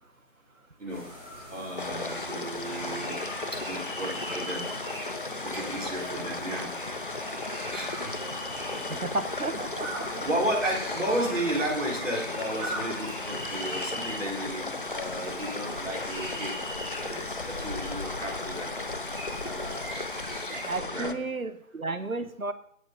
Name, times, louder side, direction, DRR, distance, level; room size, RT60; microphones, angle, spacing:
sound 1, 0.8-19.9, left 1 dB, 10° left, 1.1 m, -45 dB
sound 2, 0.9-20.7, equal, 10° right, 2.9 m, -42 dB
voice 1, 1.5-4.9 5.4-6.9 7.3-9.2 10.1-16.5 17.0-20.1 20.8-21.1, right 1 dB, 65° right, -2 dB, 4.7 m, -34 dB
sound 3, 1.8-21.1, left 3 dB, 40° left, 0.8 m, -36 dB
voice 2, 8.9-10.3 20.6-22.5, right 3 dB, 80° right, 11 dB, 1.5 m, -33 dB
18.0 x 8.4 x 3.9 m, 0.69 s
figure-of-eight pair, 160°, 41 cm